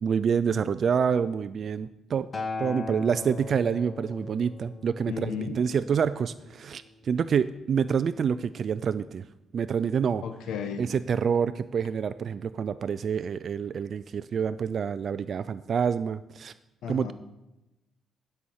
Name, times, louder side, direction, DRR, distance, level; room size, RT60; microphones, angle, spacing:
voice 1, 0.0-2.3 2.6-9.2 9.5-10.2 10.8-16.5 16.9-17.1, right 7 dB, 50° right, 14 dB, 0.3 m, -27 dB
Acoustic guitar, 2.3-6.6 7.5-7.6, left 4 dB, 25° left, 1.1 m, -39 dB
voice 2, 5.1-5.5 10.2-10.9 16.8-17.1, left 6 dB, 80° left, 9 dB, 0.9 m, -34 dB
11.5 x 5.6 x 6.3 m, 0.96 s
cardioid pair, 125°, 0 cm